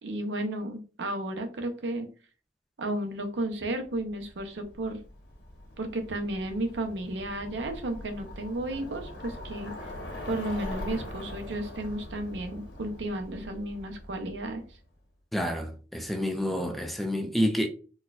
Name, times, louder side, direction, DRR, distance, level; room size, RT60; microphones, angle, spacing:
voice 1, 0.0-2.1 2.8-5.0 5.8-9.9 10.3-14.6, right 1 dB, 80° right, 0.6 m, -33 dB
Bicycle, 3.9-14.8, left 1 dB, 80° left, 1.0 m, -42 dB
voice 2, 15.3-17.7, equal, ahead, 0.3 m, -28 dB
4.0 x 2.2 x 2.3 m
head